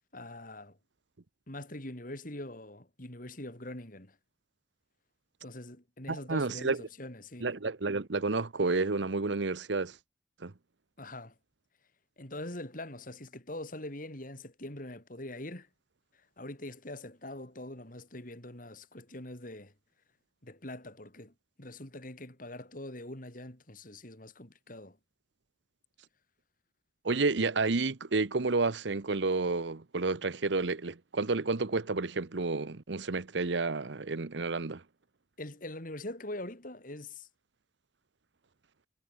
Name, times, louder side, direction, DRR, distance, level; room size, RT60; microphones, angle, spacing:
voice 1, 0.1-0.8 1.5-4.2 5.4-7.5 11.0-11.3 12.2-15.7 16.4-19.7 20.4-25.0 35.4-37.3, left 1 dB, 45° left, 3.8 m, -43 dB
voice 2, 6.1-6.8 7.4-10.0 10.4-10.5 27.0-34.8, right 3 dB, 70° right, 0.9 m, -30 dB
head